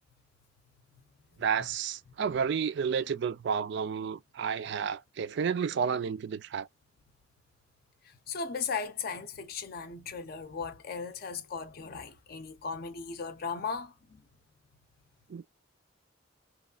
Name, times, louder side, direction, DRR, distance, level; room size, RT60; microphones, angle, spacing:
voice 1, 1.4-6.7 15.3-15.4, right 6 dB, 65° right, 0.4 m, -31 dB
voice 2, 8.0-14.2, left 5 dB, 55° left, 0.5 m, -37 dB
3.0 x 2.3 x 2.3 m
head